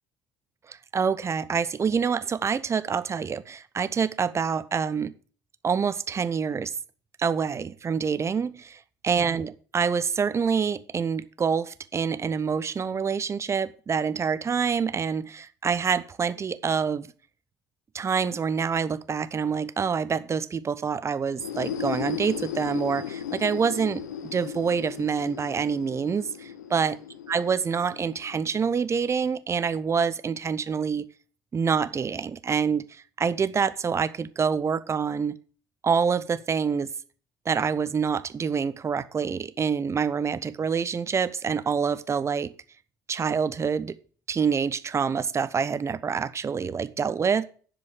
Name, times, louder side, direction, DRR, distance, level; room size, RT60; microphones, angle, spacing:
voice 1, 0.7-5.1 5.6-6.7 7.2-17.1 17.9-26.3 26.7-27.0 27.3-31.1 31.5-35.4 35.8-36.9 37.4-42.5 43.1-43.9 44.3-47.4, right 6 dB, 30° right, 0.9 m, -26 dB
sound 1, 21.3-28.9, left 9 dB, 75° left, 0.8 m, -36 dB
10.5 x 5.2 x 7.9 m
figure-of-eight pair, 55°, 10 cm